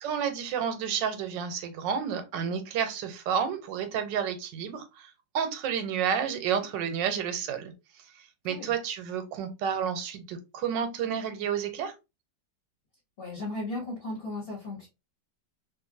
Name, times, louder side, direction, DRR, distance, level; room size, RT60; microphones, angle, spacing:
voice 1, 0.0-7.7 8.4-11.9, right 7 dB, 80° right, 8 dB, 1.3 m, -30 dB
voice 2, 13.2-14.9, left 2 dB, 40° left, -4 dB, 1.1 m, -36 dB
2.8 x 2.5 x 2.5 m, 0.25 s
omnidirectional pair, 1.9 m